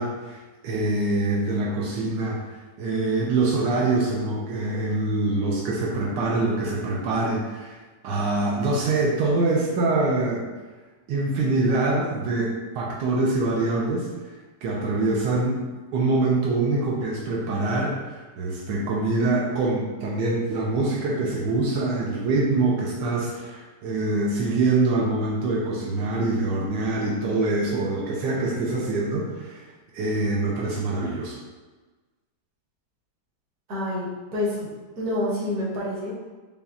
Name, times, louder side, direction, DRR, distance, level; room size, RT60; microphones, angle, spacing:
voice 1, 0.0-2.4 2.8-10.5 11.1-14.1 14.6-15.6 15.9-31.4, right 2 dB, 90° right, -4 dB, 1.3 m, -24 dB
voice 2, 33.7-34.7 35.0-36.1, left 1 dB, 60° right, -6 dB, 1.5 m, -28 dB
5.1 x 2.3 x 2.7 m, 1.3 s
omnidirectional pair, 1.9 m